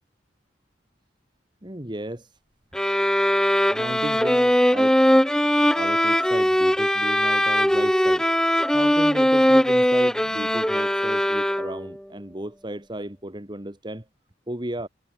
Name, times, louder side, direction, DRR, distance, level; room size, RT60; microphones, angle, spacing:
voice 1, 1.6-2.4 3.7-5.0 5.8-8.3 8.7-14.1 14.5-14.9, right 1 dB, 25° right, 2.1 m, -34 dB
sound 1, 2.7-11.9, equal, 5° left, 1.1 m, -20 dB
head